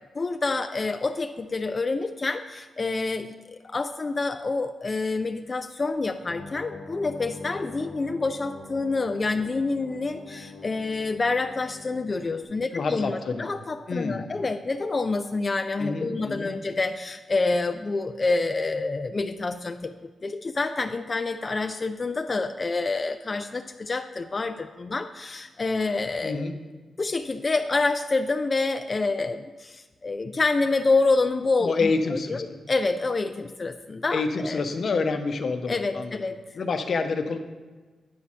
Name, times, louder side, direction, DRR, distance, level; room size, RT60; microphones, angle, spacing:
voice 1, 0.1-19.9 20.2-26.4 27.0-34.6 35.7-36.4, left 3 dB, 35° left, 8 dB, 0.3 m, -27 dB
sound 1, 6.3-12.4, left 3 dB, 85° left, 1.1 m, -43 dB
voice 2, 12.7-13.5 13.9-14.3 15.8-16.6 26.2-26.5 31.6-32.6 34.1-36.2 36.6-37.4, left 4 dB, 60° left, 6 dB, 0.7 m, -28 dB
9.4 x 4.2 x 6.0 m, 1.3 s
cardioid pair, 90°, 0 cm